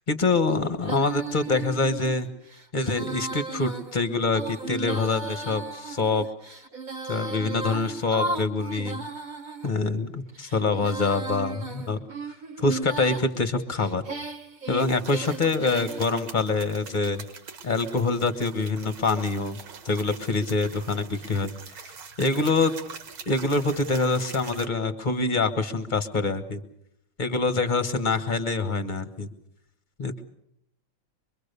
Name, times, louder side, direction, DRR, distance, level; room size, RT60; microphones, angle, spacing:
voice 1, 0.1-2.3 2.7-6.2 7.1-9.0 9.6-12.0 12.6-14.0 14.7-17.2 17.6-19.6 19.8-21.5 22.2-22.7 23.3-26.6 27.2-29.3 30.0-30.2, left 3 dB, 30° left, 10 dB, 1.0 m, -25 dB
Female singing, 0.8-9.7 10.3-13.3 13.8-16.1, right 3 dB, 25° right, 1.3 m, -36 dB
sound 1, 14.8-24.7, right 5 dB, 80° right, 2.5 m, -44 dB
24.5 x 23.0 x 6.8 m, 0.76 s
omnidirectional pair, 2.3 m